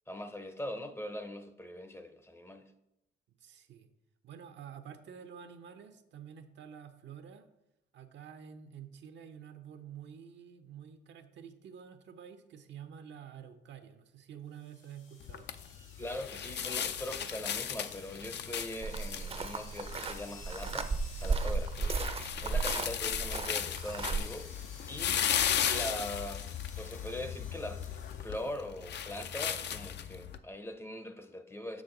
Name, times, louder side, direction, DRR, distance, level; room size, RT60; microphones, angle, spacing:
voice 1, 0.1-2.7 16.0-22.0 22.4-24.5 24.9-25.2 25.7-27.8 28.2-31.8, left 1 dB, 10° left, 0.6 m, -41 dB
voice 2, 3.4-3.9 4.2-7.5 7.9-15.5, right 8 dB, 65° right, 0.7 m, -49 dB
sound 1, 14.6-28.5, left 4 dB, 80° left, 1.7 m, -54 dB
sound 2, 15.2-30.4, left 9 dB, 60° left, 0.5 m, -36 dB
sound 3, 18.8-24.2, right 4 dB, 30° right, 0.6 m, -34 dB
6.4 x 6.2 x 3.8 m
cardioid pair, 90°, 20 cm